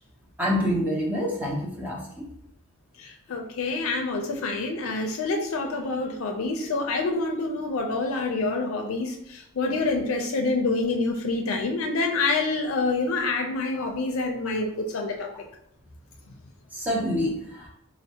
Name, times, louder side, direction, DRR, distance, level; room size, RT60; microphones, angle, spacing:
voice 1, 0.4-2.3 16.7-17.7, equal, 10° right, -2 dB, 0.5 m, -27 dB
voice 2, 3.0-15.3, left 3 dB, 90° left, 3 dB, 0.4 m, -27 dB
4.2 x 2.0 x 2.7 m, 0.75 s
head